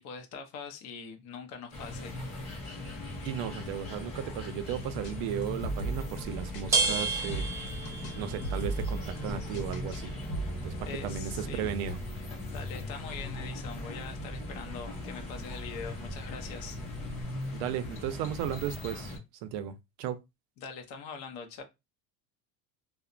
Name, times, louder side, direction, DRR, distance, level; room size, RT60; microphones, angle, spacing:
voice 1, 0.0-2.1 10.8-11.8 12.5-16.8 20.6-21.6, left 5 dB, 50° left, 0.7 m, -43 dB
sound 1, 1.7-19.2, left 1 dB, 15° left, 1.2 m, -39 dB
voice 2, 3.2-7.7 8.1-10.1 10.6-10.7 11.0-12.0 17.5-19.1 19.4-20.2, right 10 dB, 65° right, 0.5 m, -35 dB
sound 2, 5.0-5.1 5.4-6.6 6.9-8.2 8.4-10.0 10.3-10.8, right 1 dB, 70° left, 1.0 m, -37 dB
sound 3, 5.8-17.2, right 3 dB, 10° right, 0.4 m, -37 dB
2.8 x 2.0 x 2.4 m
cardioid pair, 170°, 37 cm